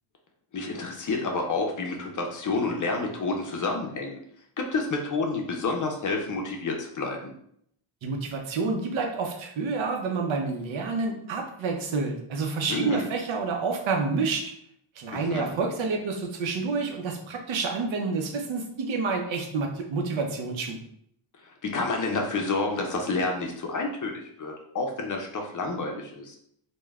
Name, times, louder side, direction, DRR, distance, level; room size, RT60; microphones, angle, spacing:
voice 1, 0.5-4.2 4.6-7.3 12.7-13.1 15.1-15.5 21.6-26.4, left 3 dB, 40° left, 2 dB, 0.5 m, -29 dB
voice 2, 8.0-14.4 15.0-20.8, right 4 dB, 70° right, 2 dB, 0.7 m, -28 dB
3.1 x 2.2 x 2.3 m, 0.69 s
cardioid pair, 90°, 50 cm